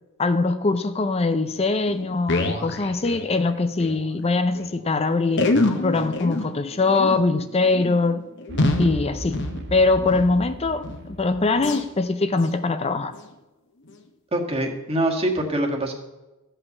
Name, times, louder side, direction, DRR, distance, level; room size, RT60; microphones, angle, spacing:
voice 1, 0.2-5.5 5.8-8.3 8.8-9.4 9.7-13.1, left 3 dB, 30° left, 0.5 m, -22 dB
sound 1, 1.5-1.6 1.9-4.0 4.3-4.4 4.5-4.7 5.3-10.4 10.8-11.1 11.6-11.9 12.3-12.6 13.1-13.2 13.9-14.0, left 2 dB, 55° left, 1.3 m, -27 dB
sound 2, 8.5-11.9, right 1 dB, 55° right, 1.0 m, -36 dB
voice 2, 14.3-15.9, right 1 dB, 30° right, 1.8 m, -24 dB
14.0 x 5.6 x 8.1 m
head